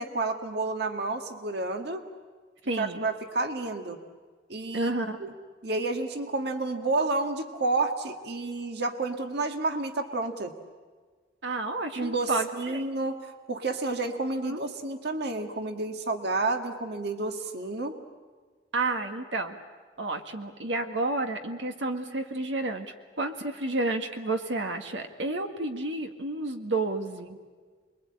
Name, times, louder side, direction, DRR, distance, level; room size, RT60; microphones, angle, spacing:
voice 1, 0.0-2.0 2.8-4.0 4.5-4.9 5.2-5.3 5.6-10.5 12.0-18.0, right 3 dB, 65° right, 5 dB, 1.7 m, -30 dB
voice 2, 2.6-3.1 4.7-5.2 11.4-12.8 14.4-14.6 18.7-19.6 20.0-27.4, right 2 dB, 80° right, 5 dB, 1.8 m, -31 dB
28.5 x 22.0 x 8.7 m, 1.5 s
head